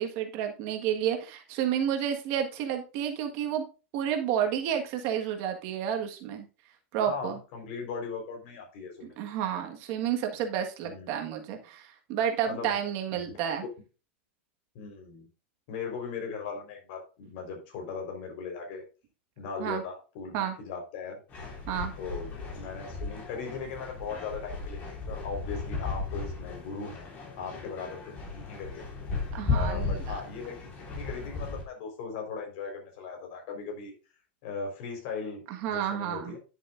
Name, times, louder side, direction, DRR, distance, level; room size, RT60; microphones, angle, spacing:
voice 1, 0.0-3.6 3.9-6.4 6.9-7.4 9.0-13.6 19.6-19.8 20.3-20.5 21.7-21.9 29.3-30.2 35.5-36.4, right 9 dB, 40° right, 4 dB, 1.6 m, -30 dB
voice 2, 7.1-9.2 10.8-11.1 12.5-12.8 13.1-13.3 14.7-15.3 15.7-18.8 19.4-21.2 22.0-27.0 27.4-28.8 29.5-33.9 34.4-36.4, left 5 dB, 50° left, 3 dB, 4.3 m, -38 dB
sound 1, 21.3-31.6, left 4 dB, 25° left, 3.2 m, -35 dB
10.5 x 7.4 x 2.6 m, 0.33 s
supercardioid pair, 165°, 6 cm